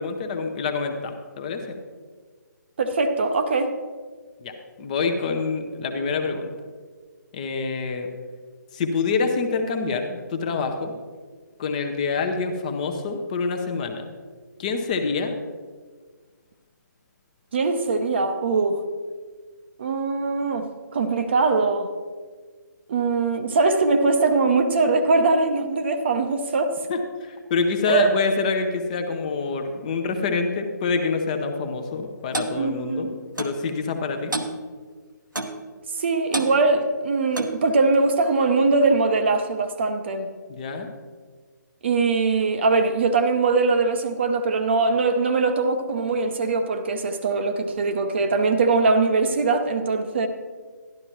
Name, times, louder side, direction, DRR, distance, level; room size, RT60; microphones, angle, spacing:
voice 1, 0.0-1.8 4.4-4.5 4.8-6.5 7.3-8.1 8.7-11.0 11.6-14.1 14.6-15.4 26.9-33.1 33.4-34.3 40.5-40.9, left 4 dB, 25° left, 0.7 m, -26 dB
voice 2, 2.8-3.7 17.5-18.8 19.8-21.9 22.9-26.7 27.9-28.2 32.6-33.1 36.0-40.3 41.8-50.3, right 3 dB, 35° right, 0.7 m, -21 dB
Clock, 32.3-32.6 33.4-33.6 34.3-34.6 35.4-35.6 36.3-36.5 37.3-37.6, right 2 dB, 80° right, 1.0 m, -28 dB
12.0 x 11.5 x 3.0 m
figure-of-eight pair, 140°, 10 cm